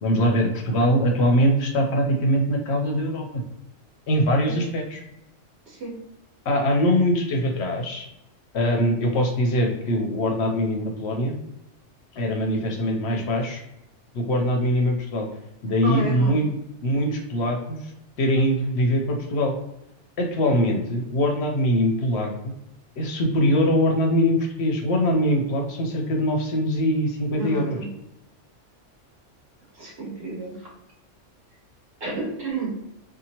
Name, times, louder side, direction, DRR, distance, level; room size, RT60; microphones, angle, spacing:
voice 1, 0.0-3.4 4.1-5.0 6.5-8.1 8.5-11.4 12.1-13.6 14.1-15.3 15.6-16.5 16.8-17.9 18.2-19.6 20.2-22.5 23.0-27.8, equal, 65° left, 2 dB, 0.8 m, -22 dB
voice 2, 15.8-16.3 27.3-27.9 29.7-30.7 32.0-32.7, right 2 dB, 60° right, -4 dB, 1.2 m, -31 dB
2.7 x 2.4 x 2.7 m, 0.86 s
omnidirectional pair, 1.3 m